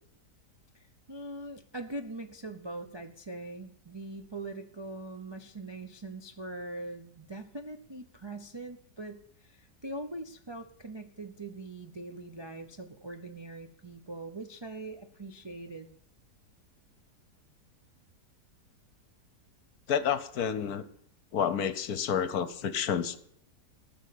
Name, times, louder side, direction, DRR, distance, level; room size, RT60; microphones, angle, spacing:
voice 1, 0.7-15.9, right 2 dB, 35° right, 4 dB, 0.4 m, -42 dB
voice 2, 19.9-20.8 21.3-23.2, left 8 dB, 65° left, 14 dB, 1.3 m, -29 dB
14.0 x 6.3 x 8.4 m, 0.68 s
omnidirectional pair, 1.8 m